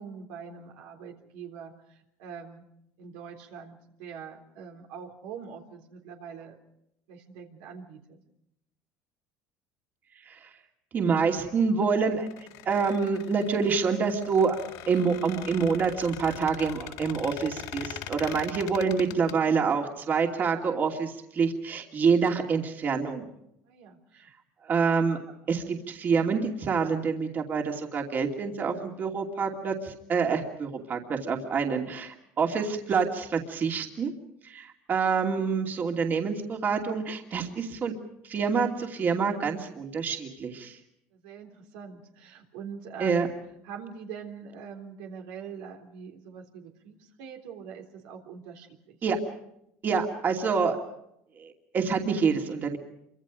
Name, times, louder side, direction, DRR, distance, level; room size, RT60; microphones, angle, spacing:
voice 1, 0.0-2.6 3.0-6.6 7.1-8.2 19.0-19.2 23.7-24.3 41.1-43.3 43.6-49.0, right 7 dB, 80° right, 2 dB, 3.5 m, -44 dB
voice 2, 10.9-14.6 14.9-23.3 24.6-25.2 25.5-34.1 34.4-38.0 38.2-40.8 43.0-43.3 49.0-49.2 49.8-50.8 51.4-52.8, right 5 dB, 35° right, 2 dB, 2.7 m, -27 dB
Squeak, 12.1-19.3, left 11 dB, 80° left, 3.9 m, -42 dB
27.5 x 25.0 x 5.1 m, 0.79 s
cardioid pair, 125°, 5 cm